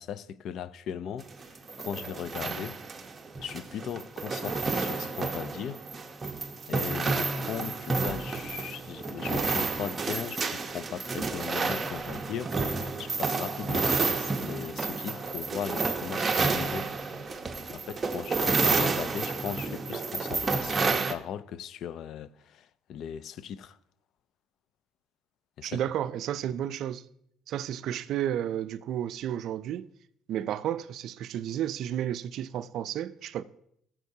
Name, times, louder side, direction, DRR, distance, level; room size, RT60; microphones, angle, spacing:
voice 1, 0.0-2.8 3.4-5.8 6.7-16.9 17.7-23.8 25.6-25.8, left 9 dB, 60° left, 0.4 m, -38 dB
sound 1, 1.2-21.1, right 4 dB, 25° right, 0.8 m, -30 dB
voice 2, 25.6-27.1 27.5-29.9 30.3-33.4, right 10 dB, 65° right, 0.4 m, -32 dB
15.5 x 7.4 x 2.8 m
cardioid pair, 105°, 0 cm